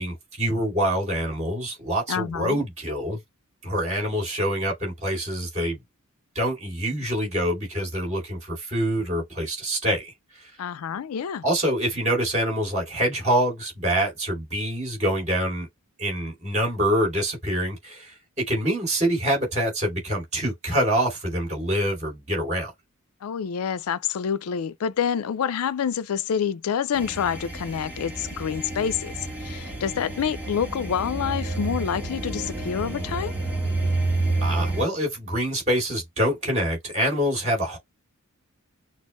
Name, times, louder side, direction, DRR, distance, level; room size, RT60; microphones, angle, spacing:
voice 1, 0.0-3.2 3.6-5.8 6.3-10.5 11.4-15.7 16.0-22.7 34.4-37.8, equal, 35° right, 2.4 m, -25 dB
voice 2, 2.1-2.6 10.6-11.4 23.2-33.3, left 7 dB, 75° left, 0.4 m, -27 dB
sound 1, 26.9-34.8, right 2 dB, 10° right, 2.0 m, -29 dB
6.1 x 2.1 x 3.0 m
head